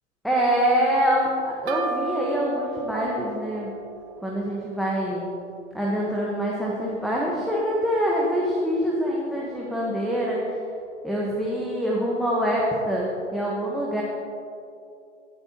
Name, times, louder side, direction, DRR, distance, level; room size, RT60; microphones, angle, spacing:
voice 1, 0.2-3.7 4.2-5.3 5.7-10.6 11.0-14.0, equal, ahead, -4 dB, 1.1 m, -25 dB
sound 1, 1.7-5.2, right 4 dB, 60° right, 1.9 m, -35 dB
17.0 x 8.7 x 2.9 m, 2.6 s
hypercardioid pair, 120°, 37 cm